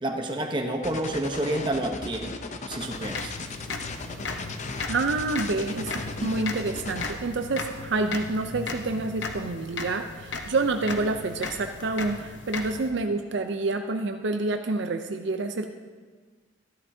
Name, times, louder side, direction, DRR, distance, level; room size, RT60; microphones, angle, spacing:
voice 1, 0.0-2.3 2.7-3.3, right 1 dB, 25° right, 3 dB, 0.8 m, -29 dB
sound 1, 0.8-7.1, left 3 dB, 35° left, 0.6 m, -37 dB
sound 2, 2.8-12.9, left 3 dB, 60° left, 0.9 m, -36 dB
voice 2, 4.9-5.9 6.2-15.7, right 3 dB, 60° right, 6 dB, 0.5 m, -28 dB
13.5 x 12.0 x 2.7 m, 1.4 s
head